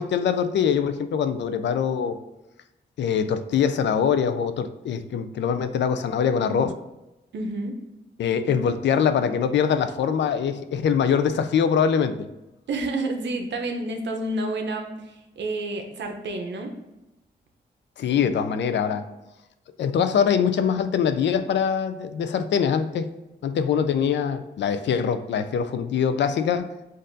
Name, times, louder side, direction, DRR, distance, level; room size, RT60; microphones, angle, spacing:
voice 1, 0.0-2.2 3.0-6.8 8.2-12.2 18.0-19.0 19.8-23.1 23.4-26.7, left 7 dB, 85° left, 10 dB, 0.4 m, -23 dB
voice 2, 7.3-7.9 12.7-16.8, right 2 dB, 80° right, 4 dB, 0.7 m, -29 dB
7.5 x 2.6 x 2.6 m, 0.97 s
wide cardioid pair, 100°, 18 cm